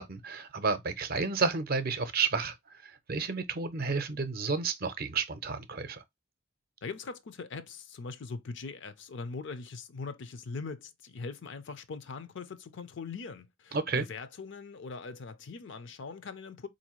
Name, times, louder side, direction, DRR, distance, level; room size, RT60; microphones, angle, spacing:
voice 1, 0.0-2.5 2.8-6.0 13.7-14.1, right 4 dB, 50° right, 0.6 m, -31 dB
voice 2, 6.8-16.7, left 4 dB, 65° left, 0.5 m, -41 dB
4.1 x 2.6 x 2.9 m
head